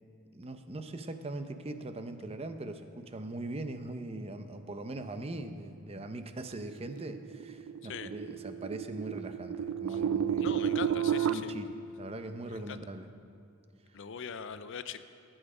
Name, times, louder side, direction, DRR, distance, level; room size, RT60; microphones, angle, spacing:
voice 1, 0.3-11.0 11.3-13.1, right 2 dB, 30° right, 8 dB, 0.7 m, -41 dB
sound 1, 6.6-11.3, right 8 dB, 80° right, 0.4 m, -32 dB
voice 2, 10.4-11.5 12.5-12.8 13.9-15.0, left 6 dB, 60° left, 12 dB, 0.5 m, -41 dB
17.0 x 8.9 x 4.9 m, 2.5 s
head